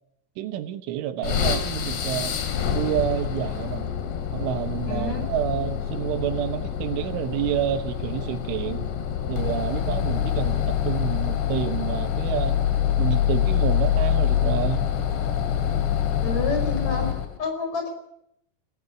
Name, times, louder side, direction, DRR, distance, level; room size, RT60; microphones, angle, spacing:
voice 1, 0.4-2.4 2.7-3.9 4.3-8.9 9.3-12.6 13.0-14.9, right 11 dB, 80° right, 9 dB, 3.5 m, -29 dB
sound 1, 1.2-17.4, left 10 dB, 65° left, 4.1 m, -25 dB
voice 2, 4.8-5.2 16.2-17.1 17.4-17.9, left 3 dB, 35° left, 5 dB, 6.0 m, -28 dB
21.5 x 14.5 x 9.8 m, 0.75 s
omnidirectional pair, 5.7 m